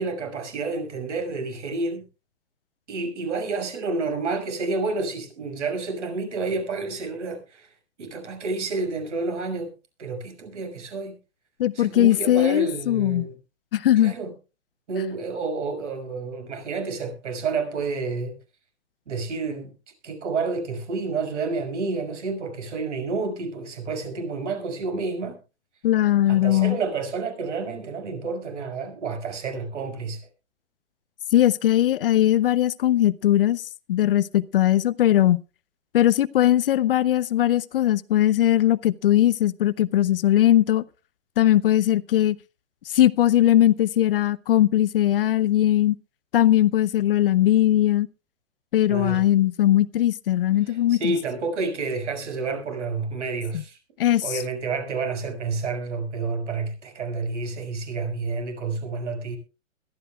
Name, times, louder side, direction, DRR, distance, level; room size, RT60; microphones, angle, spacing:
voice 1, 0.0-2.0 2.9-7.7 8.0-9.7 10.0-11.2 11.7-13.3 14.0-14.3 14.9-18.4 19.1-19.7 20.0-25.4 26.3-30.2 48.9-49.2 50.6-53.8 54.2-59.4, right 4 dB, 65° right, 6.2 m, -29 dB
voice 2, 11.6-13.3 13.7-14.1 25.8-26.8 31.3-35.4 35.9-40.8 41.4-42.4 42.9-46.0 46.3-48.1 48.7-51.2 53.5-53.6 54.0-54.4, left 13 dB, 45° left, 0.6 m, -20 dB
21.5 x 13.5 x 2.3 m
hypercardioid pair, 140°, 38 cm